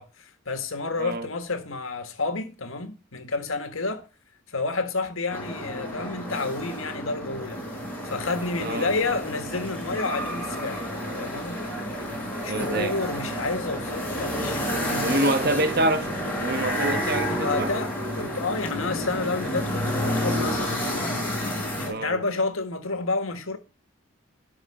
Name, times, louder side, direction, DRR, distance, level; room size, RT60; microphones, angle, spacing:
voice 1, 0.0-4.1 4.5-7.6 8.0-10.9 11.2-11.6 11.9-15.6 17.3-21.2 21.8-23.6, left 3 dB, 80° left, 1.7 m, -30 dB
sound 1, 5.3-21.9, equal, 10° left, 4.7 m, -30 dB
voice 2, 8.6-8.9 12.5-13.0 15.0-16.1 16.4-17.7 21.9-22.2, right 1 dB, 50° right, 1.3 m, -26 dB
12.5 x 5.0 x 5.5 m
head